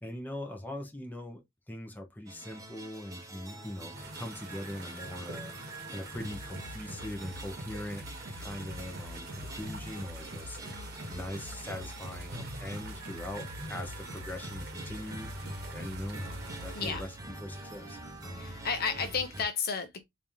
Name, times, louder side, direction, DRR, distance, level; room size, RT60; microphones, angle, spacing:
voice 1, 0.0-1.4 1.7-5.5 5.9-8.0 8.3-15.3 15.7-16.3 16.6-17.1 17.4-18.0, left 1 dB, 10° left, 0.9 m, -41 dB
sound 1, 2.3-19.4, right 2 dB, 15° right, 1.0 m, -46 dB
sound 2, 3.9-16.9, right 2 dB, 50° right, 1.1 m, -46 dB
sound 3, 6.2-17.2, left 1 dB, 70° right, 1.0 m, -45 dB
voice 2, 18.4-20.0, left 5 dB, 50° left, 0.6 m, -32 dB
3.3 x 2.8 x 3.4 m
head